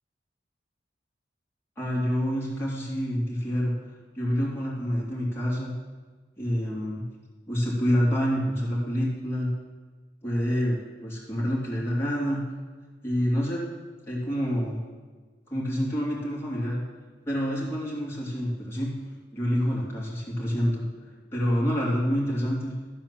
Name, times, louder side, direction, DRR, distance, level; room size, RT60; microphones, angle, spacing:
voice 1, 1.8-3.7 4.1-5.7 6.4-7.0 7.5-9.5 10.2-12.4 13.0-13.6 14.0-14.8 15.5-16.8 17.2-18.9 19.3-20.8 21.3-22.7, equal, 15° left, -6 dB, 3.2 m, -27 dB
13.0 x 4.7 x 7.3 m, 1.4 s
head